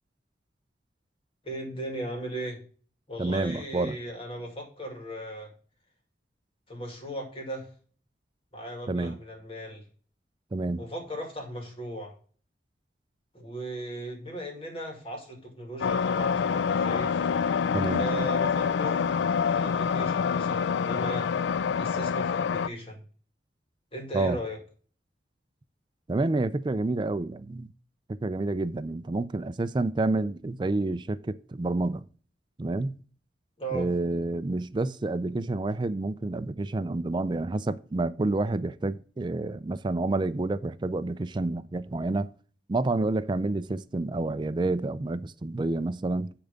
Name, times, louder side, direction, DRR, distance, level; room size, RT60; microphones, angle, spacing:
voice 1, 1.4-2.6 3.1-5.5 6.7-7.7 8.5-9.8 10.8-12.1 13.3-17.3 17.9-19.1 19.5-21.3 21.8-23.0 23.9-24.6 33.6-33.9, right 1 dB, 30° left, 2.2 m, -37 dB
voice 2, 3.2-4.0 8.9-9.2 10.5-10.9 17.7-18.0 24.1-24.4 26.1-27.7 28.1-32.1 32.6-33.0 33.7-42.3 42.7-46.3, right 2 dB, 25° right, 0.4 m, -29 dB
sound 1, 15.8-22.7, left 6 dB, 80° left, 0.3 m, -26 dB
10.0 x 3.5 x 5.1 m
head